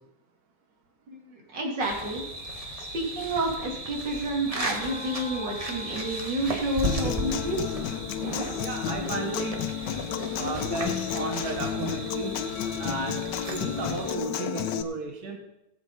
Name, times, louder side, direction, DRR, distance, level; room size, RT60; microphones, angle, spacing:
voice 1, 1.1-2.3 2.9-7.7, right 1 dB, 90° right, -1 dB, 3.1 m, -30 dB
sound 1, 1.8-14.2, right 1 dB, 25° right, 1.2 m, -36 dB
sound 2, 4.7-9.3, left 6 dB, 50° left, 1.4 m, -48 dB
Human voice / Acoustic guitar, 6.8-14.8, left 9 dB, 80° left, 1.4 m, -32 dB
voice 2, 8.6-9.7 10.3-12.4 12.8-15.4, right 3 dB, 60° right, 2 dB, 1.7 m, -34 dB
17.5 x 8.3 x 4.0 m, 0.91 s
omnidirectional pair, 1.9 m